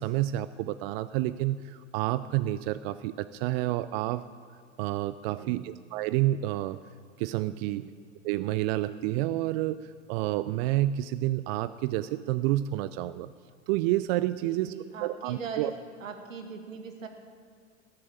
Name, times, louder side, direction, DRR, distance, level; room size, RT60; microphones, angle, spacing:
voice 1, 0.0-4.3 4.8-6.8 7.2-7.9 8.2-13.3 13.7-14.7 15.0-15.7, right 15 dB, 50° right, 14 dB, 0.5 m, -29 dB
voice 2, 5.3-5.6 7.6-7.9 14.3-15.7 16.0-17.1, right 6 dB, 80° right, 4 dB, 2.3 m, -40 dB
19.5 x 7.8 x 8.9 m, 2.2 s
hypercardioid pair, 90°, 38 cm